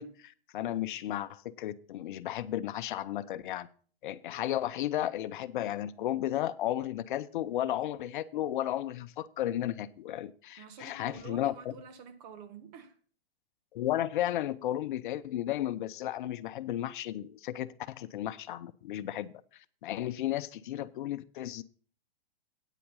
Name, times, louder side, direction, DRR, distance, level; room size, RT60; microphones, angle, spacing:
voice 1, 0.0-3.7 4.0-11.5 13.7-19.3 19.8-21.6, left 12 dB, 55° left, 0.7 m, -34 dB
voice 2, 10.6-13.0, right 6 dB, 45° right, 1.5 m, -48 dB
9.2 x 8.5 x 5.5 m
hypercardioid pair, 130°, 30 cm